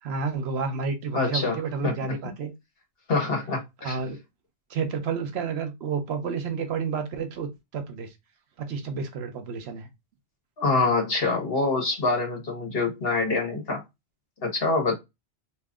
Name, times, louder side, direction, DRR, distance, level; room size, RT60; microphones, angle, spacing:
voice 1, 0.0-2.5 3.8-4.2 4.7-8.1 8.6-9.9, right 5 dB, 70° right, 0.9 m, -30 dB
voice 2, 1.1-1.9 3.1-4.0 10.6-13.8 14.4-15.0, left 3 dB, 60° left, 1.4 m, -25 dB
2.8 x 2.5 x 3.5 m
omnidirectional pair, 1.1 m